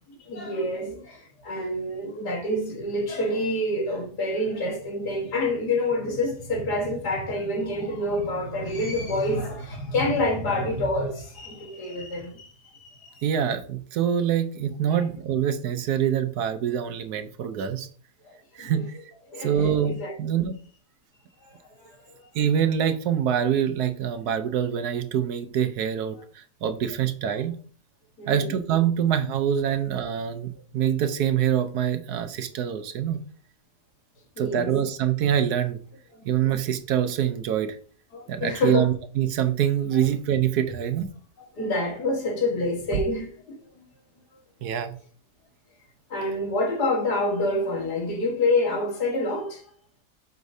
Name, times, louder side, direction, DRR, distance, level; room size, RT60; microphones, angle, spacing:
voice 1, 0.3-13.2 14.9-15.0 18.2-18.9 19.3-19.5 19.8-20.1 21.4-22.1 28.2-28.6 34.4-34.7 36.1-36.5 38.1-38.9 39.9-40.1 41.5-43.8 46.1-49.6, left 1 dB, 85° left, 2.1 m, -27 dB
voice 2, 13.2-17.9 18.5-19.0 19.4-20.6 22.3-27.5 28.3-33.2 34.4-35.8 36.2-37.8 38.3-41.1 44.6-45.0, right 9 dB, 80° right, 1.2 m, -25 dB
8.0 x 5.3 x 2.7 m
omnidirectional pair, 1.7 m